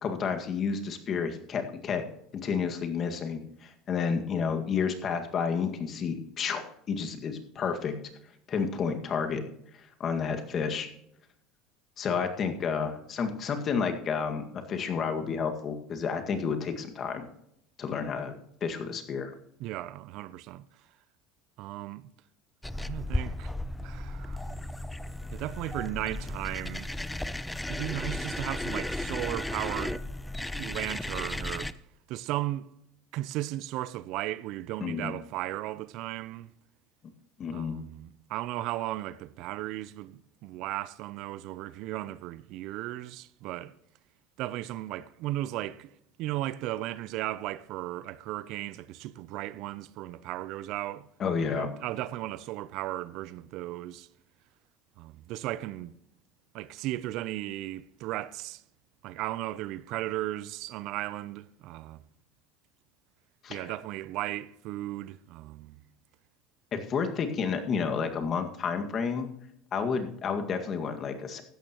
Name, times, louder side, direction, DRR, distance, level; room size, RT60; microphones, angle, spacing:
voice 1, 0.0-2.0 2.3-8.0 8.5-9.4 10.0-10.9 12.0-17.3 17.8-18.3 18.6-19.3 34.8-35.1 37.4-37.8 51.2-51.7 63.4-63.7 66.7-69.3 69.7-71.4, left 6 dB, 40° left, 1.9 m, -30 dB
voice 2, 19.6-20.6 21.6-22.1 22.7-23.5 23.8-24.4 25.3-26.9 27.7-30.0 30.6-31.7 32.1-32.7 33.1-36.5 37.5-43.7 44.4-45.9 46.2-51.1 51.5-54.1 55.0-55.9 56.5-58.6 59.0-62.0 63.5-65.8, right 15 dB, 65° right, 0.5 m, -36 dB
sound 1, 22.6-31.7, left 1 dB, 5° left, 0.5 m, -35 dB
15.0 x 11.5 x 3.0 m
supercardioid pair, 95°, 0 cm